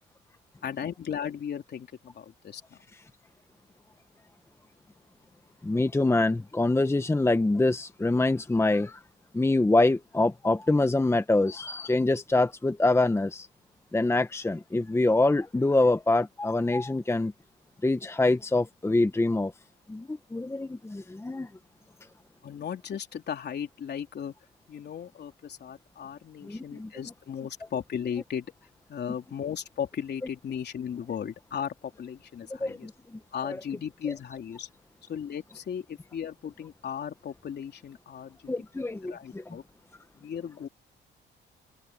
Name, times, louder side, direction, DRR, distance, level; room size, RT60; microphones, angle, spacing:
voice 1, 0.6-2.8 22.4-24.3 24.7-28.5 28.9-32.9 33.3-34.7 35.1-39.6 40.2-40.7, left 8 dB, 55° left, 3.6 m, -36 dB
voice 2, 5.6-9.0 9.3-13.5 13.9-17.3 17.8-19.5 19.9-21.5 26.4-26.9 32.6-33.6 38.5-39.5, left 2 dB, 15° left, 1.1 m, -25 dB
cardioid pair, 90°, 20 cm